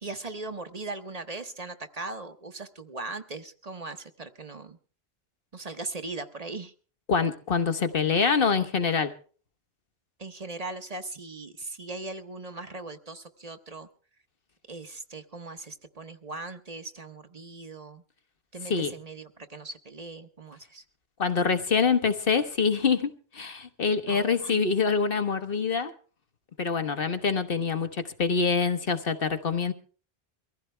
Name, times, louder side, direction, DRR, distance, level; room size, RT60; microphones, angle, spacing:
voice 1, 0.0-4.8 5.5-6.7 10.2-13.9 14.7-18.0 18.5-20.8 24.1-24.7, right 3 dB, 40° right, 1.0 m, -39 dB
voice 2, 7.1-9.1 18.7-18.9 21.2-25.9 26.6-29.7, left 5 dB, 65° left, 1.4 m, -25 dB
23.0 x 15.0 x 3.3 m
omnidirectional pair, 1.0 m